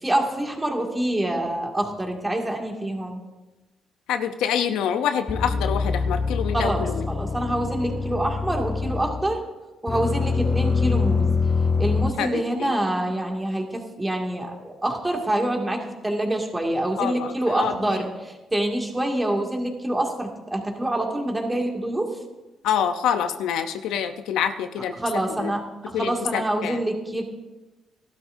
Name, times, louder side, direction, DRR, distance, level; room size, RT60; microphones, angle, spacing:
voice 1, 0.0-3.2 6.5-9.4 9.8-11.3 11.8-22.2 25.0-27.2, right 1 dB, 15° right, 1 dB, 2.2 m, -26 dB
voice 2, 4.1-7.0 12.2-12.7 17.0-17.7 22.6-24.9 25.4-25.5 25.9-26.8, left 8 dB, 90° left, 8 dB, 0.7 m, -26 dB
sound 1, 5.3-9.4 9.9-12.1, left 4 dB, 30° left, 0.6 m, -24 dB
16.0 x 12.5 x 2.7 m, 1.1 s
cardioid pair, 90°, 0 cm